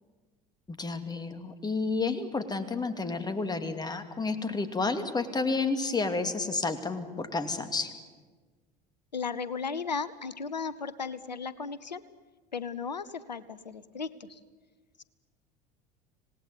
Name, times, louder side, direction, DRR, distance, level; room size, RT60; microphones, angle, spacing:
voice 1, 0.7-7.9, left 3 dB, 20° left, 9 dB, 2.5 m, -31 dB
voice 2, 9.1-12.0 12.5-14.4, left 5 dB, 85° left, 17 dB, 0.9 m, -35 dB
26.5 x 18.5 x 9.9 m, 1.4 s
figure-of-eight pair, 70°, 21 cm